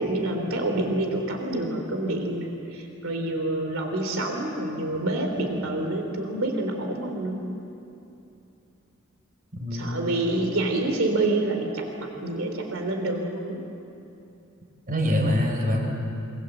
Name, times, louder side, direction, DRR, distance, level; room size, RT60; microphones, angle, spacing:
voice 1, 0.0-7.4 9.7-13.6, right 2 dB, 75° right, 4 dB, 3.3 m, -27 dB
voice 2, 9.6-10.1 14.9-15.9, left 1 dB, 40° right, 2 dB, 4.4 m, -24 dB
27.5 x 25.5 x 8.0 m, 2.8 s
head